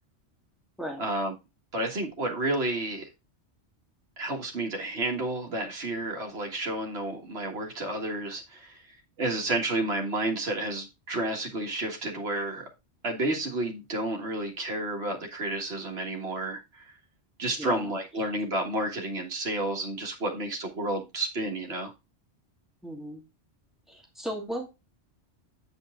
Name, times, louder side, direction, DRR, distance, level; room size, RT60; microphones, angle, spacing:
voice 1, 1.0-1.4 1.7-3.1 4.2-8.8 9.2-12.7 13.0-16.9 17.4-21.9, right 2 dB, 65° right, 2.0 m, -31 dB
voice 2, 17.6-17.9 22.8-23.2 23.9-24.7, equal, ahead, 2.5 m, -36 dB
9.2 x 5.4 x 3.7 m
omnidirectional pair, 1.1 m